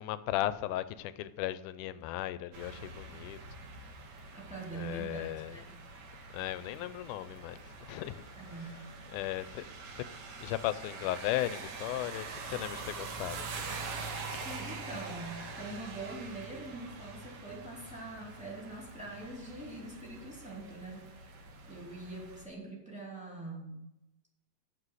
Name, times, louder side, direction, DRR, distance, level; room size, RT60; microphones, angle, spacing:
voice 1, 0.0-3.4 4.7-5.6 6.3-8.2 8.6-8.7 9.1-10.0 10.4-13.7 14.3-14.5, left 14 dB, 90° left, 2.1 m, -36 dB
sound 1, 2.5-22.5, right 4 dB, 70° right, 2.4 m, -45 dB
voice 2, 4.3-5.8 8.3-8.8 14.4-21.3 21.7-23.8, right 2 dB, 5° right, 2.1 m, -44 dB
7.6 x 6.2 x 6.3 m
omnidirectional pair, 3.5 m